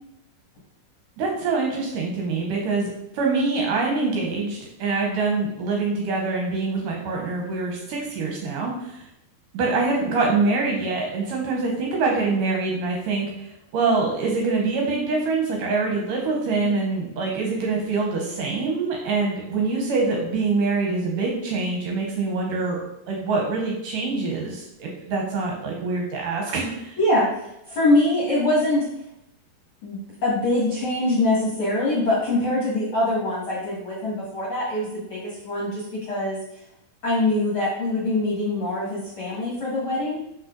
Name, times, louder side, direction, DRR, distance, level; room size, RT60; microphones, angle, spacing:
voice 1, 1.2-9.0 9.5-13.5 13.7-22.8 23.1-27.0, right 3 dB, 70° right, 0 dB, 2.2 m, -25 dB
voice 2, 27.0-28.9 29.8-36.4 37.0-40.2, left 1 dB, 45° left, -7 dB, 1.9 m, -23 dB
6.0 x 5.4 x 3.8 m, 0.82 s
omnidirectional pair, 4.4 m